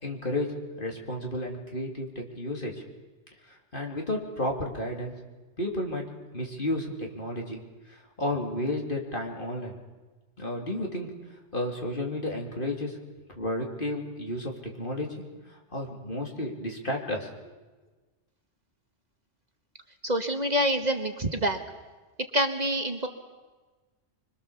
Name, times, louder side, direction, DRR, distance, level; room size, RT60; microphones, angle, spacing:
voice 1, 0.0-2.8 3.4-5.1 5.6-6.1 6.3-7.6 7.9-9.7 10.4-11.1 11.5-13.0 13.3-14.5 14.8-17.5, left 1 dB, 50° left, 1 dB, 3.4 m, -32 dB
voice 2, 20.0-21.6 22.3-23.1, equal, 40° right, 5 dB, 1.6 m, -26 dB
26.5 x 22.5 x 7.1 m, 1.3 s
omnidirectional pair, 1.2 m